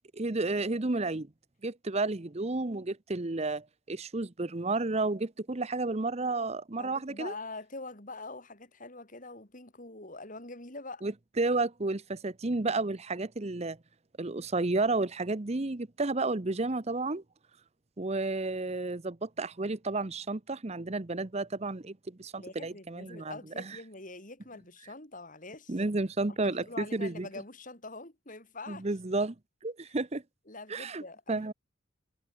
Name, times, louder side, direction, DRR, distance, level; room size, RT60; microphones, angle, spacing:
voice 1, 0.1-1.3 1.6-7.3 11.0-13.8 14.2-17.2 18.0-23.6 25.7-27.3 28.7-29.3 29.6-30.2 30.7-31.0 31.3-31.5, right 3 dB, 30° right, 0.8 m, -31 dB
voice 2, 6.8-11.0 22.3-25.8 26.3-28.9 30.5-31.5, left 3 dB, 40° left, 4.9 m, -44 dB
head